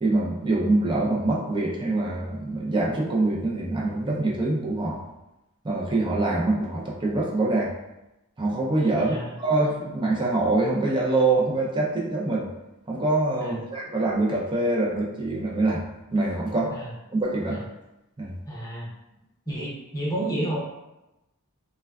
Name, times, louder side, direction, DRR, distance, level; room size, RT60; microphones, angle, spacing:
voice 1, 0.0-5.0 5.6-7.7 8.4-12.5 12.9-15.8 16.1-16.7 17.1-17.6 18.2-18.3, right 2 dB, 20° right, -3 dB, 0.5 m, -24 dB
voice 2, 8.9-9.3 13.4-13.6 16.7-16.9 17.5-17.6 18.5-18.9 19.5-20.6, right 1 dB, 15° left, -5 dB, 0.6 m, -31 dB
3.2 x 2.2 x 2.3 m, 0.94 s
head